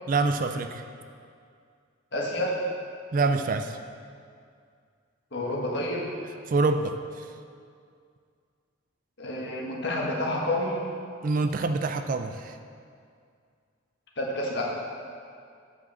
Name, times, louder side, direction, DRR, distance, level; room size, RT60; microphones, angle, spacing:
voice 1, 0.1-0.8 3.1-3.8 6.5-6.9 11.2-12.5, right 3 dB, 40° right, 8 dB, 0.4 m, -25 dB
voice 2, 2.1-2.6 5.3-6.0 9.2-10.8 14.2-14.6, left 1 dB, 55° left, -3 dB, 1.6 m, -29 dB
8.3 x 4.8 x 7.4 m, 2.2 s
head